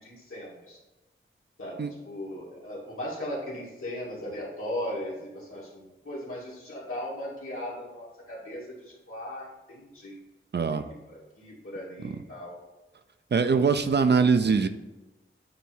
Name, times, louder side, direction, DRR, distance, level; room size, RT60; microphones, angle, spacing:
voice 1, 0.0-0.8 1.6-10.2 10.7-10.8 11.1-12.6, left 1 dB, 85° left, -6 dB, 2.4 m, -38 dB
voice 2, 10.5-10.8 12.0-12.2 13.3-14.7, right 5 dB, 55° right, 10 dB, 0.5 m, -23 dB
9.2 x 3.1 x 4.4 m, 1.1 s
wide cardioid pair, 55°, 21 cm